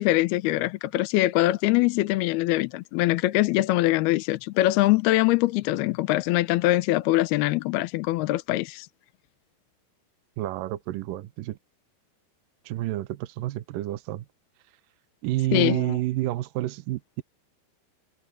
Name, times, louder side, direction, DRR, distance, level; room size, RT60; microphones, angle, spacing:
voice 1, 0.0-8.9 15.5-15.9, left 17 dB, 80° left, 2.5 m, -23 dB
voice 2, 10.4-11.6 12.7-14.3 15.2-17.2, right 16 dB, 85° right, 2.0 m, -29 dB
omnidirectional pair, 5.0 m